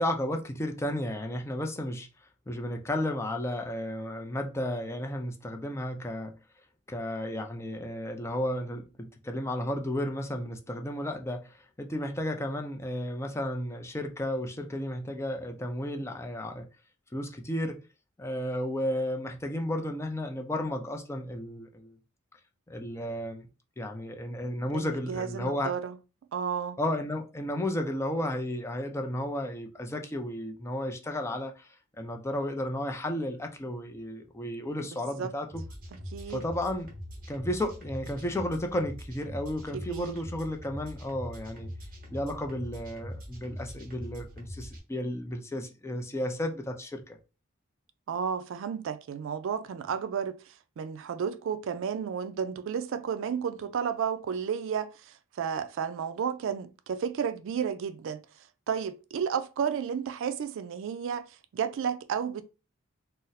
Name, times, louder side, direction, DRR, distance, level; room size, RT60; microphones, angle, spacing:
voice 1, 0.0-2.1 2.5-6.4 6.9-16.7 17.1-17.8 18.2-22.0 22.7-23.5 23.8-25.7 26.8-31.7 32.0-35.6 36.3-36.9 37.3-41.7 42.1-47.2, left 1 dB, 15° left, 0.4 m, -33 dB
voice 2, 24.7-26.0 26.3-26.8 35.2-35.3 36.1-36.4 39.7-40.2 48.1-58.2 58.7-61.3 61.5-62.4, right 7 dB, 65° right, 0.3 m, -32 dB
sound 1, 35.5-44.8, equal, 45° right, 0.9 m, -42 dB
2.6 x 2.0 x 3.9 m
head